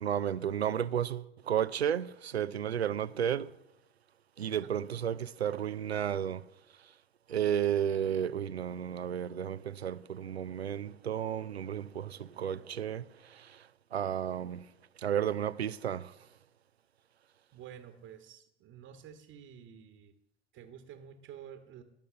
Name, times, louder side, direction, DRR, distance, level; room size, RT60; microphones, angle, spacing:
voice 1, 0.0-3.5 4.4-6.4 7.3-13.6 13.9-14.7 15.0-16.1, right 9 dB, 85° right, 0.5 m, -33 dB
voice 2, 17.5-20.1 20.5-21.8, right 9 dB, 45° right, 1.3 m, -50 dB
19.5 x 6.5 x 7.6 m
figure-of-eight pair, 70°, 31 cm